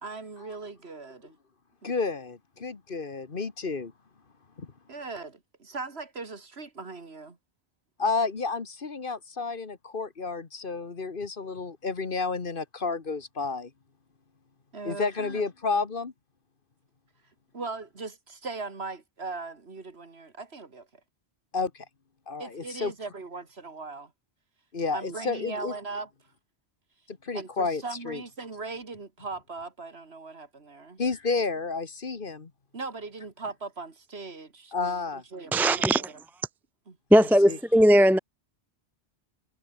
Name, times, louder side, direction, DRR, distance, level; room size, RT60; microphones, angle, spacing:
voice 1, 0.0-1.3 4.9-7.4 14.7-15.4 17.5-20.9 22.4-24.1 24.9-26.1 27.3-31.0 32.7-36.2 36.9-37.0, right 3 dB, 65° right, 2.5 m, -39 dB
voice 2, 1.8-3.9 4.6-4.7 8.0-13.7 14.8-16.1 21.5-21.8 22.3-22.9 24.7-25.7 27.1-28.2 31.0-32.5 34.7-35.2 37.1-37.6, left 4 dB, 50° left, 1.6 m, -31 dB
voice 3, 35.5-36.0 37.1-38.2, equal, ahead, 0.4 m, -18 dB
omnidirectional pair, 1.2 m